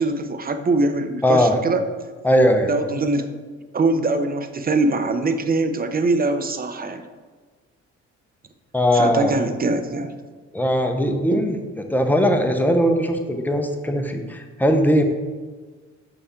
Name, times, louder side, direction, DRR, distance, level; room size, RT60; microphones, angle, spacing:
voice 1, 0.0-1.8 2.7-3.3 3.7-7.1 8.9-10.1 11.3-11.5, right 2 dB, 30° right, 9 dB, 0.6 m, -22 dB
voice 2, 1.2-1.6 2.2-2.7 8.7-9.3 10.5-11.6 11.9-15.0, equal, 5° left, 5 dB, 0.8 m, -19 dB
6.8 x 5.7 x 3.7 m, 1.4 s
cardioid pair, 90°, 30 cm